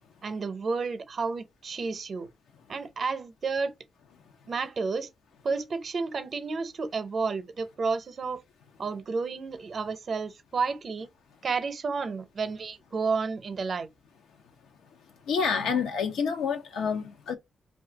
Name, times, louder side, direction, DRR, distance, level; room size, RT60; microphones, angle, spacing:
voice 1, 0.2-2.3 2.7-3.7 4.5-5.1 5.4-8.4 8.8-11.1 11.4-13.9, right 4 dB, 55° right, 0.6 m, -31 dB
voice 2, 14.9-17.3, left 6 dB, 85° left, 0.6 m, -29 dB
2.5 x 2.3 x 3.9 m
supercardioid pair, 50°, 0 cm